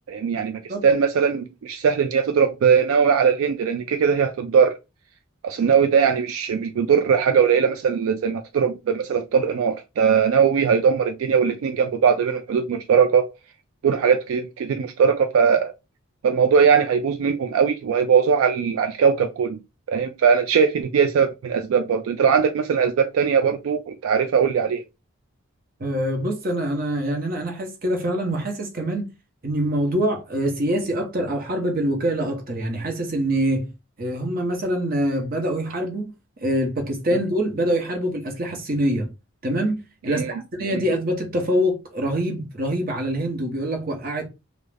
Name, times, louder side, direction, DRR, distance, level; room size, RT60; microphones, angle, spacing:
voice 1, 0.1-4.8 5.4-13.3 13.8-15.7 16.2-19.6 19.9-24.8 40.1-40.3 40.6-40.8, right 6 dB, 75° right, 0.3 m, -20 dB
voice 2, 25.8-29.1 29.4-33.7 34.0-36.1 36.4-39.1 39.4-44.3, right 1 dB, 40° right, 0.7 m, -25 dB
2.4 x 2.0 x 3.2 m
head